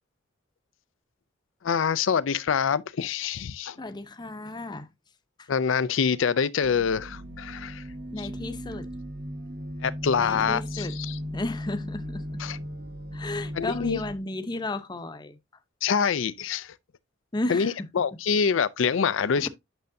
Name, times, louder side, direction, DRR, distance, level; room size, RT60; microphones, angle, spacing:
voice 1, 1.6-3.8 5.5-7.8 9.8-11.1 12.4-12.6 13.6-14.0 15.8-16.7 17.5-19.5, left 6 dB, 80° left, 0.4 m, -25 dB
voice 2, 3.8-4.9 5.4-5.5 8.1-8.9 10.2-11.0 11.3-12.4 13.1-15.4 17.3-17.9 19.4-19.5, left 2 dB, 20° left, 0.7 m, -34 dB
sound 1, 6.6-14.2, equal, 55° right, 1.4 m, -37 dB
9.1 x 6.4 x 2.6 m
head